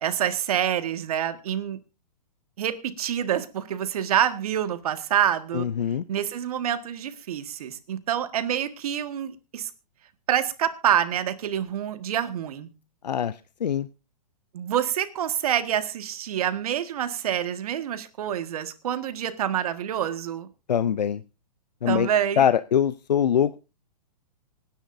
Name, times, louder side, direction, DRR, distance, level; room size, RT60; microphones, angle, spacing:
voice 1, 0.0-1.8 2.6-5.6 6.1-9.7 10.3-12.7 14.5-20.5 21.8-22.5, right 10 dB, 60° right, 10 dB, 1.7 m, -27 dB
voice 2, 5.5-6.0 13.0-13.3 13.6-13.9 20.7-21.2 21.8-22.1 22.4-23.6, left 8 dB, 85° left, 15 dB, 0.6 m, -23 dB
25.5 x 10.0 x 2.7 m, 0.30 s
hypercardioid pair, 130°, 21 cm